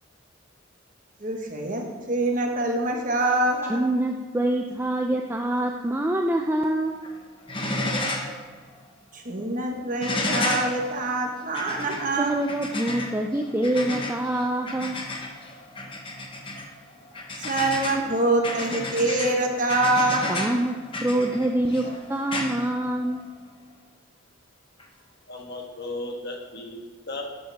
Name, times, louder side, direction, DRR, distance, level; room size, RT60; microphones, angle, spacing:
voice 1, 1.2-3.8 9.1-12.3 17.4-20.5, right 2 dB, 40° right, 2 dB, 1.4 m, -25 dB
voice 2, 3.7-7.0 12.2-14.9 20.3-20.7 21.0-21.8 22.1-23.2, right 1 dB, 10° right, 2 dB, 0.4 m, -25 dB
sound 1, 6.9-7.2 7.4-8.4 8.7-8.8 10.0-23.4 24.8-24.9, left 2 dB, 25° left, 1.1 m, -32 dB
voice 3, 25.3-27.2, left 2 dB, 50° left, 1 dB, 1.5 m, -35 dB
13.0 x 8.8 x 3.5 m, 1.5 s
head